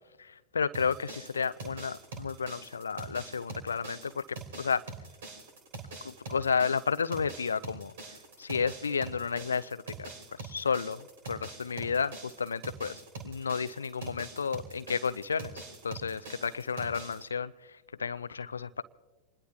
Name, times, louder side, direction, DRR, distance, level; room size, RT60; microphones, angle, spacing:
voice 1, 0.2-4.8 6.0-7.9 8.4-18.8, left 6 dB, 75° left, 13 dB, 0.4 m, -32 dB
sound 1, 0.7-17.2, right 4 dB, 60° right, 3.9 m, -44 dB
28.0 x 20.5 x 2.3 m, 1.1 s
figure-of-eight pair, 90°, 0 cm